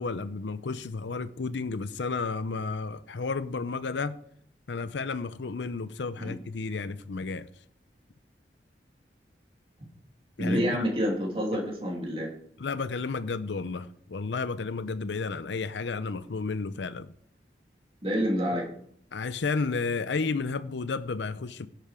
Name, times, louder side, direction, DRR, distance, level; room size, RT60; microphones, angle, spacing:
voice 1, 0.0-4.2 4.7-7.5 10.4-10.8 12.6-17.1 19.1-21.7, left 4 dB, 85° left, 0.6 m, -32 dB
voice 2, 10.4-12.3 18.0-18.7, equal, 30° right, 2.9 m, -28 dB
11.5 x 8.3 x 5.1 m
head